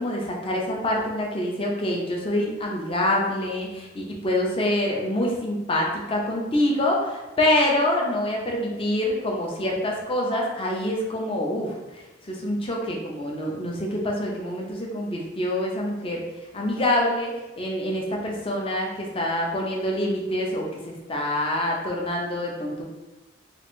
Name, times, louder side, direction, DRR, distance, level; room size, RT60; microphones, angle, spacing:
voice 1, 0.0-16.2 16.5-22.8, left 1 dB, 25° left, -1 dB, 0.6 m, -26 dB
3.8 x 2.5 x 3.6 m, 1.1 s
head